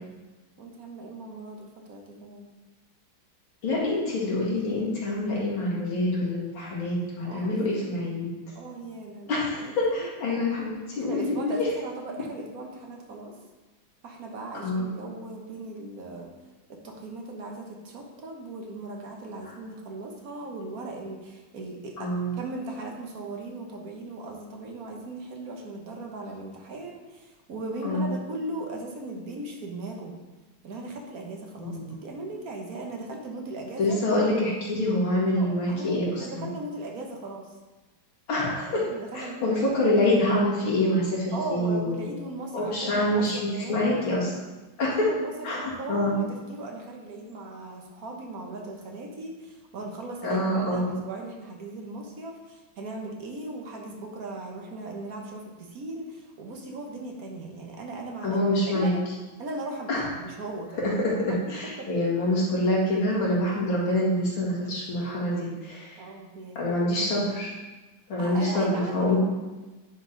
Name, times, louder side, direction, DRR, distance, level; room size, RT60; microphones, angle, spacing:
voice 1, 0.6-2.5 7.2-8.0 8.5-10.1 11.0-13.3 14.0-16.3 16.7-30.1 30.6-34.0 35.4-37.5 38.7-39.9 41.3-43.9 44.8-58.4 58.7-59.0 59.4-61.0 61.3-61.4 61.8-61.9 66.0-66.7 68.2-69.2, right 2 dB, 55° right, 1 dB, 1.3 m, -38 dB
voice 2, 3.6-8.3 9.3-11.7 14.6-15.0 22.0-22.4 27.8-28.1 31.6-31.9 33.8-36.5 38.3-38.8 39.1-42.1 42.5-44.3 44.8-45.1 45.4-46.2 50.2-50.9 58.2-58.9 59.9-60.1 60.8-66.0 66.6-67.6 68.1-69.2, left 1 dB, 80° left, -5 dB, 2.8 m, -26 dB
9.8 x 4.5 x 3.9 m, 1.2 s
omnidirectional pair, 2.2 m